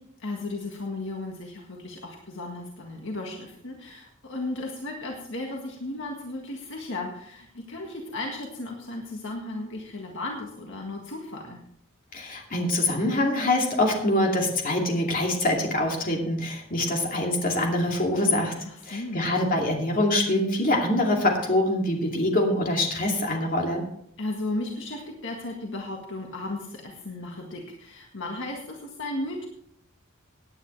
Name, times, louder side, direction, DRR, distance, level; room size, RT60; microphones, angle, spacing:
voice 1, 0.2-11.6 18.6-19.3 24.2-29.5, left 2 dB, 65° left, 0 dB, 1.8 m, -35 dB
voice 2, 12.1-18.5 18.9-23.8, left 1 dB, 45° left, 0 dB, 2.6 m, -24 dB
17.5 x 9.6 x 3.3 m, 0.70 s
head